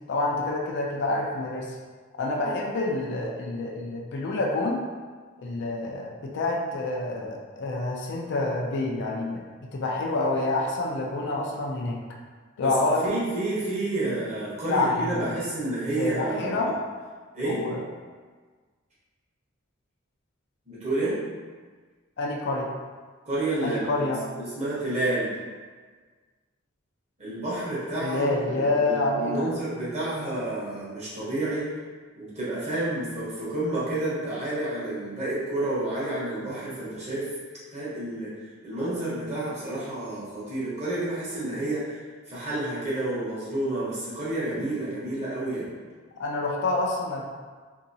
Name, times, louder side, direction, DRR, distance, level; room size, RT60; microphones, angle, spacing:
voice 1, 0.1-1.8 2.2-4.8 5.4-9.4 9.7-12.0 12.6-13.1 14.6-15.4 15.9-16.7 17.4-17.8 22.2-22.7 23.6-24.2 28.0-29.6 46.2-47.3, left 2 dB, 55° left, -1 dB, 0.4 m, -27 dB
voice 2, 13.0-16.7 17.3-17.6 20.7-21.2 23.2-25.3 27.2-28.3 28.5-31.7 32.1-37.3 37.7-45.7, right 2 dB, 35° right, -8 dB, 1.0 m, -30 dB
2.7 x 2.7 x 2.6 m, 1.5 s
head